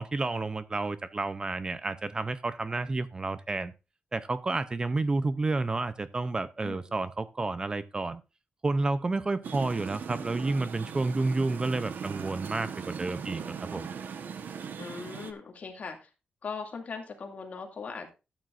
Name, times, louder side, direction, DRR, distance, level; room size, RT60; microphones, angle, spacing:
voice 1, 0.0-3.7 4.1-8.2 8.6-13.9, right 3 dB, 25° right, 0.5 m, -30 dB
voice 2, 6.6-6.9 14.8-16.1 16.4-18.1, left 5 dB, 50° left, 2.3 m, -39 dB
sound 1, 9.4-15.3, right 6 dB, 75° right, 1.1 m, -39 dB
13.0 x 9.1 x 2.5 m
wide cardioid pair, 155°, 3 cm